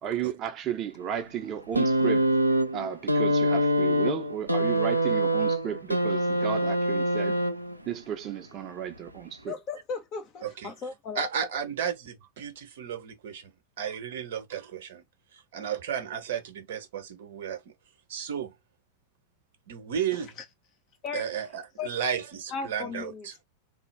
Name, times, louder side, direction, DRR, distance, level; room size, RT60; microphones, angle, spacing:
voice 1, 0.0-2.3 2.7-7.4 7.9-9.6, right 9 dB, 35° right, 0.7 m, -33 dB
sound 1, 1.7-7.9 9.0-9.1, right 1 dB, 90° right, 0.5 m, -25 dB
voice 2, 9.5-11.2 21.0-21.2 21.8-21.9 22.5-23.4, left 5 dB, 35° left, 0.8 m, -36 dB
voice 3, 10.4-10.7 11.1-15.0 15.3-17.7 18.1-18.5 19.7-20.4 21.1-23.4, right 8 dB, 55° right, 1.0 m, -34 dB
3.5 x 2.3 x 3.2 m
figure-of-eight pair, 90°, 0 cm